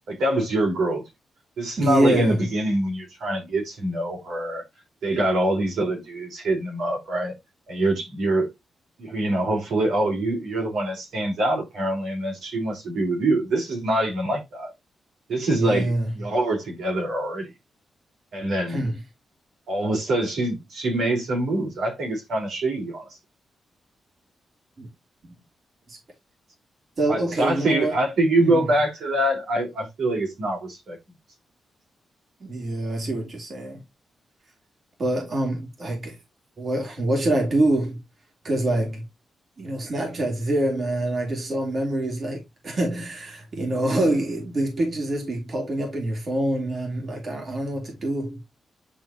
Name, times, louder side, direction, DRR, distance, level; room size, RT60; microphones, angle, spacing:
voice 1, 0.1-1.0 1.6-4.6 5.0-7.4 7.7-8.5 9.0-14.7 15.3-15.9 16.2-17.5 18.3-18.8 19.7-23.1 27.1-31.0, right 1 dB, 80° right, 4.0 m, -24 dB
voice 2, 1.8-2.4 15.5-16.1 18.7-19.0 24.8-24.9 25.2-25.3 25.9-26.0 27.0-28.0 28.4-28.6 32.4-33.8 35.0-36.2 36.6-38.0 38.4-39.0 39.6-48.4, right 1 dB, 40° right, 3.0 m, -25 dB
10.0 x 4.3 x 2.8 m
wide cardioid pair, 130°, 0 cm